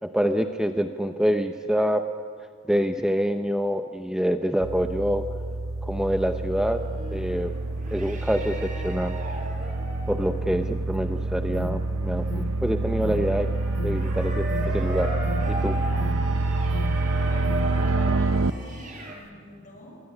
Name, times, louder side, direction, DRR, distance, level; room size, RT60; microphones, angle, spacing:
voice 1, 0.0-2.0 2.6-5.3 5.8-6.8 7.1-7.5 7.9-9.2 10.1-13.5 13.8-15.1 15.5-15.8, equal, 5° right, 6 dB, 0.7 m, -26 dB
sound 1, 4.6-18.5, right 3 dB, 85° right, 0.8 m, -27 dB
sound 2, 6.6-19.1, right 1 dB, 40° right, 4.9 m, -38 dB
Alarm, 10.9-17.6, left 2 dB, 65° left, 1.5 m, -38 dB
voice 2, 17.3-20.0, left 1 dB, 40° left, 2 dB, 6.7 m, -46 dB
23.0 x 19.5 x 9.9 m, 2.1 s
head